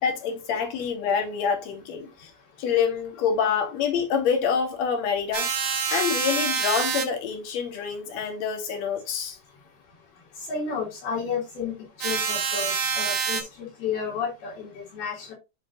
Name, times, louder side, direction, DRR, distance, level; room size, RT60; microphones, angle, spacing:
voice 1, 0.0-2.3 2.6-5.5 5.9-9.4, left 6 dB, 55° left, 2.3 m, -26 dB
sound 1, 5.3-7.0 12.0-13.4, right 6 dB, 65° right, 1.5 m, -26 dB
voice 2, 10.5-11.7 12.0-15.3, left 5 dB, 75° left, 5.2 m, -31 dB
11.0 x 3.9 x 2.8 m
omnidirectional pair, 4.4 m